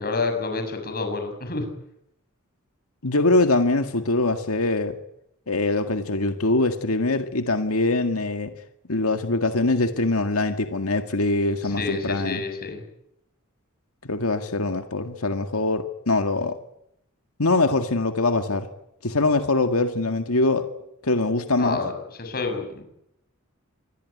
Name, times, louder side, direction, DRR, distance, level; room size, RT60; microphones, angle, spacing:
voice 1, 0.0-1.7 11.6-12.8 21.6-21.9 22.2-22.8, left 3 dB, 45° left, 6 dB, 6.9 m, -28 dB
voice 2, 3.0-5.0 5.5-8.5 8.9-12.4 14.0-16.6 17.4-18.7 19.0-20.7 21.0-21.8, left 2 dB, 75° left, 7 dB, 2.0 m, -23 dB
26.0 x 21.0 x 9.7 m, 0.79 s
head